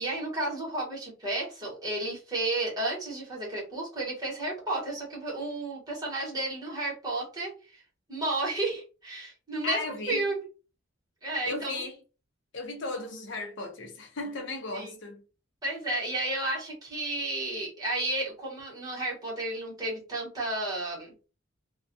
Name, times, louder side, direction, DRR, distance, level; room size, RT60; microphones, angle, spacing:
voice 1, 0.0-7.8 8.1-9.8 10.1-10.4 11.2-11.8 14.7-14.9 15.6-21.1, right 2 dB, 20° right, 1.1 m, -32 dB
voice 2, 9.6-10.2 11.4-12.0 12.5-15.2, left 2 dB, 60° left, 0.6 m, -36 dB
2.3 x 2.2 x 2.6 m
head